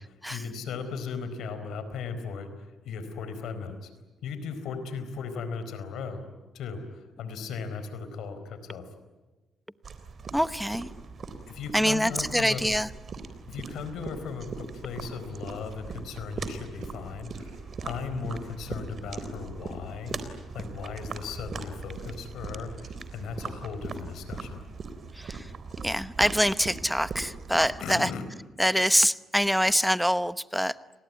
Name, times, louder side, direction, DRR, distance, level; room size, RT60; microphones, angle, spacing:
voice 1, 0.0-3.9 4.2-6.2 6.5-8.9 11.5-12.6 13.5-20.2 20.5-24.6 27.8-28.2, left 5 dB, 80° left, 10 dB, 4.4 m, -37 dB
sound 1, 9.8-27.8, right 4 dB, 45° right, 3.6 m, -40 dB
voice 2, 10.3-10.9 11.7-12.9 25.2-25.4 25.8-28.1 28.6-30.8, equal, ahead, 15 dB, 0.9 m, -25 dB
Tools, 13.4-13.5 13.8-14.0 14.3-14.4 14.7-18.1, right 4 dB, 85° right, 5.8 m, -60 dB
30.0 x 20.0 x 9.6 m, 1.2 s
cardioid pair, 90°, 0 cm